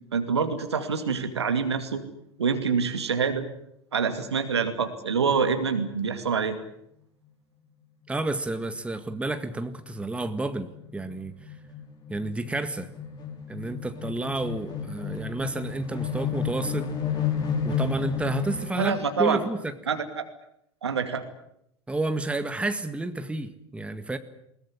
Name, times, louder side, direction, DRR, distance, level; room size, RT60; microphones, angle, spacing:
voice 1, 0.1-2.0 2.4-3.5 3.9-6.6 18.8-19.4 19.9-20.2 20.8-21.2, right 6 dB, 75° right, 8 dB, 2.4 m, -26 dB
voice 2, 8.1-11.3 12.1-12.9 13.5-16.9 17.6-19.8 21.9-24.2, right 2 dB, 10° right, 10 dB, 1.9 m, -30 dB
sound 1, 9.5-19.2, left 6 dB, 30° left, 6.4 m, -32 dB
21.5 x 20.0 x 9.9 m, 0.76 s
figure-of-eight pair, 80°, 14 cm